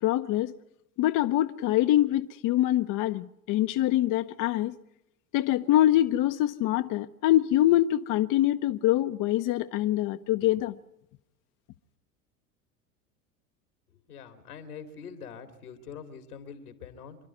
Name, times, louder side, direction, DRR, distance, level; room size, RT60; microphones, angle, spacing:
voice 1, 0.0-0.5 1.0-4.8 5.3-10.8, left 14 dB, 45° left, 0.8 m, -24 dB
voice 2, 14.1-17.2, left 6 dB, 90° left, 2.7 m, -44 dB
26.5 x 11.5 x 9.4 m
hypercardioid pair, 85°, 43 cm